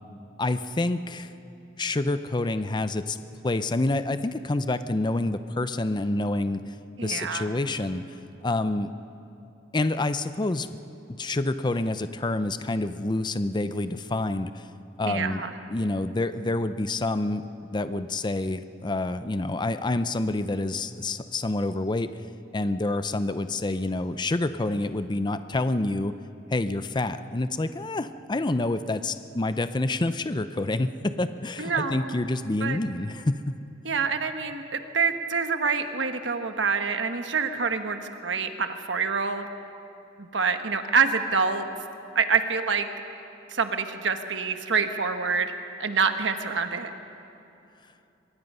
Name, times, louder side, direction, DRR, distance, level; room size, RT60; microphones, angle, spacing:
voice 1, 0.4-1.3 1.8-3.2 3.4-6.7 7.0-8.0 8.4-8.9 9.7-10.7 11.2-14.7 15.0-15.4 15.7-22.1 22.5-26.1 26.5-33.6, left 2 dB, 25° left, 11 dB, 0.5 m, -27 dB
voice 2, 7.0-7.5 15.0-15.5 31.6-32.1 32.6-32.8 33.8-39.5 40.2-41.7 42.1-42.9 43.5-45.5 45.8-46.9, right 5 dB, 80° right, 7 dB, 1.2 m, -26 dB
24.0 x 21.5 x 5.5 m, 2.8 s
head